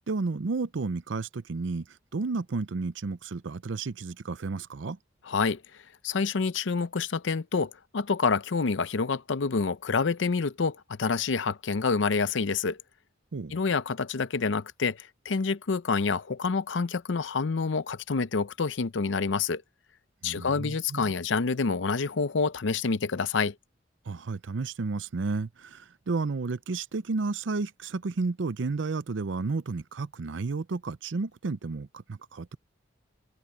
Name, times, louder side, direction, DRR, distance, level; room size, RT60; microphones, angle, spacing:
voice 1, 0.1-5.0 13.3-13.6 20.2-21.1 24.1-32.6, right 3 dB, 70° right, 0.6 m, -32 dB
voice 2, 5.3-5.6 6.0-12.8 13.5-19.6 20.2-23.5, left 4 dB, 75° left, 0.6 m, -27 dB
head